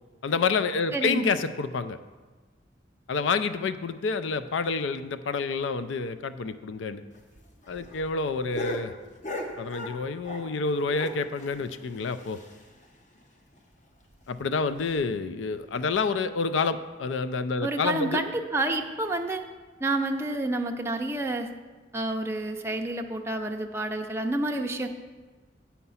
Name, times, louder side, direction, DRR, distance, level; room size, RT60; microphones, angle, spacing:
voice 1, 0.2-2.0 3.1-7.0 7.7-8.9 9.6-12.4 14.3-18.2, left 4 dB, 80° left, 12 dB, 0.4 m, -28 dB
voice 2, 0.9-1.3 17.6-19.4 19.8-21.5 21.9-24.9, right 2 dB, 15° right, 3 dB, 0.5 m, -29 dB
sound 1, 7.1-10.6 10.9-12.9 13.2-13.3 13.5-13.6 14.0-14.1 14.7-15.0 15.8-16.0, left 1 dB, 40° left, 0.9 m, -38 dB
8.4 x 5.7 x 5.6 m, 1.3 s
head